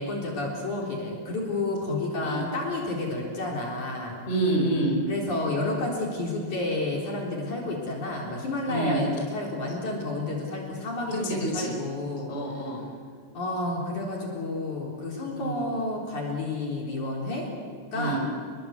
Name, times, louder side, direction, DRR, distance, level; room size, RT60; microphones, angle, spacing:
voice 1, 0.0-4.1 5.1-12.3 13.3-17.4 17.9-18.2, left 2 dB, 45° left, -2 dB, 5.1 m, -30 dB
voice 2, 4.3-5.0 8.6-9.0 11.1-11.7 12.3-12.8 15.3-15.6 17.9-18.2, right 1 dB, 15° left, 0 dB, 4.6 m, -27 dB
30.0 x 22.5 x 8.3 m, 2.1 s
omnidirectional pair, 5.3 m